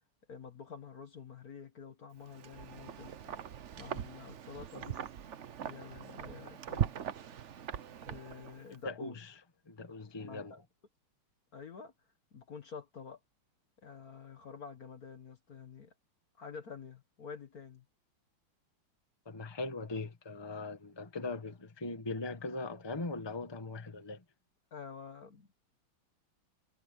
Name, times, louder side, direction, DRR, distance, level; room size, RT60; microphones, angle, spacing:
voice 1, 0.3-3.3 3.8-5.0 5.6-6.9 8.0-9.2 10.2-10.6 11.5-11.9 12.3-13.2 13.8-15.9 16.4-17.9 24.7-25.6, left 6 dB, 45° left, 1.7 m, -48 dB
Wind, 2.2-8.7, right 9 dB, 60° right, 0.7 m, -40 dB
voice 2, 8.7-9.3 9.6-10.5 19.2-24.2, left 3 dB, 15° left, 1.4 m, -40 dB
omnidirectional pair, 2.3 m